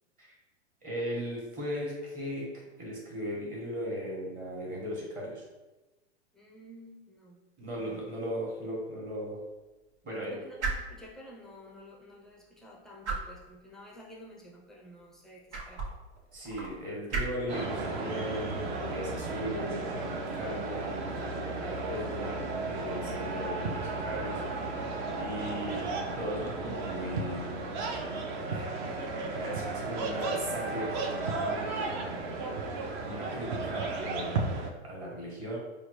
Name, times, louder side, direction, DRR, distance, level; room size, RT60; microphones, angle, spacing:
voice 1, 0.8-2.4 2.8-5.4 7.6-9.4 10.0-10.4 16.3-18.5 18.8-24.7 25.1-25.9 26.1-27.4 28.4-28.7 29.3-31.8 33.1-35.6, equal, 25° right, -4 dB, 1.2 m, -37 dB
voice 2, 6.3-8.1 10.3-15.9, equal, ahead, -4 dB, 0.4 m, -51 dB
sound 1, 7.6-21.2, right 3 dB, 80° right, 1.1 m, -42 dB
sound 2, 17.5-34.7, right 3 dB, 45° right, 0.7 m, -34 dB
4.9 x 2.2 x 3.1 m, 1.1 s
hypercardioid pair, 130°, 34 cm